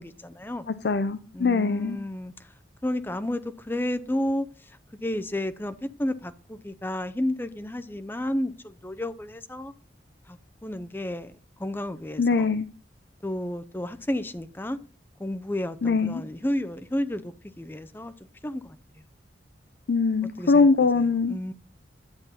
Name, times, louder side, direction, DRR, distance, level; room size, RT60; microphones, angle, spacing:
voice 1, 0.0-0.7 1.3-2.5 2.8-9.7 10.3-11.3 11.6-12.5 13.2-14.8 15.2-18.1 18.4-19.0 20.4-20.7 20.9-21.5, left 1 dB, 10° left, 0.5 m, -32 dB
voice 2, 0.8-2.0 12.2-12.7 15.8-16.2 19.9-21.5, left 4 dB, 65° left, 0.5 m, -22 dB
10.5 x 7.3 x 4.0 m
head